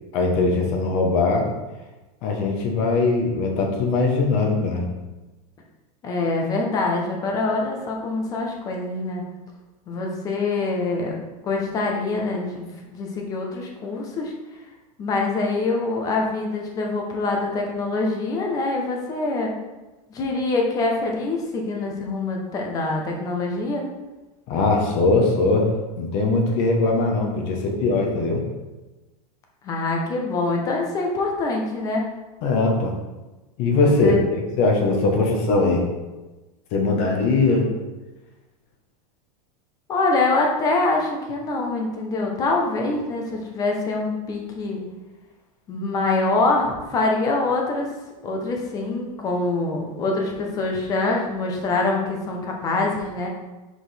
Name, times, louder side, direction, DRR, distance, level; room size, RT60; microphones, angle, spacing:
voice 1, 0.1-1.5 2.2-4.8 24.5-28.4 32.4-33.0 33.6-35.9 36.7-37.7, left 3 dB, 40° left, 1 dB, 1.1 m, -21 dB
voice 2, 6.0-9.2 9.9-11.2 11.4-12.7 12.9-14.3 15.0-19.5 20.1-23.8 29.6-32.1 33.7-34.2 39.9-44.8 45.7-47.9 48.2-53.3, left 3 dB, 20° left, 0 dB, 0.7 m, -24 dB
5.9 x 5.1 x 3.4 m, 1.1 s
supercardioid pair, 175°, 19 cm